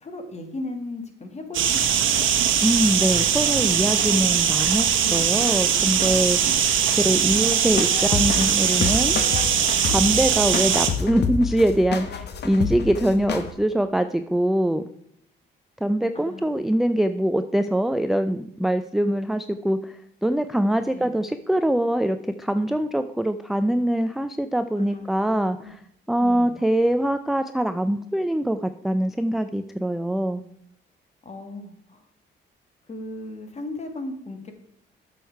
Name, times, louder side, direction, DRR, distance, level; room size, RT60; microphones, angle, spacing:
voice 1, 0.0-2.2 6.4-6.5 7.1-7.3 9.9-10.1 16.1-16.5 20.9-21.1 24.8-25.7 26.2-26.5 31.2-32.0 32.9-34.5, left 2 dB, 35° left, 6 dB, 1.7 m, -37 dB
sound 1, 1.5-10.9, right 8 dB, 75° right, 1.1 m, -21 dB
voice 2, 2.6-6.5 6.9-9.2 9.9-14.8 15.8-25.8 26.1-30.4, right 1 dB, ahead, 9 dB, 0.4 m, -23 dB
sound 2, 7.6-13.5, left 6 dB, 55° left, 1.0 m, -29 dB
7.8 x 6.4 x 4.6 m, 0.75 s
cardioid pair, 90°, 20 cm